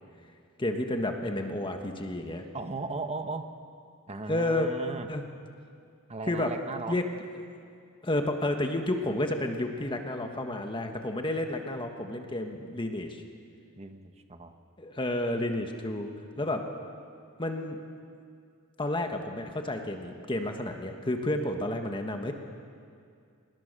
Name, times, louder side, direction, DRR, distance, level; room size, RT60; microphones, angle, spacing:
voice 1, 0.6-2.4 4.3-4.7 5.1-5.2 6.3-6.5 6.9-7.0 8.0-13.2 14.8-16.7 17.4-17.8 18.8-22.3, left 1 dB, 25° left, 4 dB, 1.5 m, -31 dB
voice 2, 2.5-3.5 4.1-5.1 6.1-6.9 13.8-14.5, right 3 dB, 30° right, 7 dB, 1.3 m, -36 dB
25.5 x 20.0 x 6.8 m, 2.3 s
head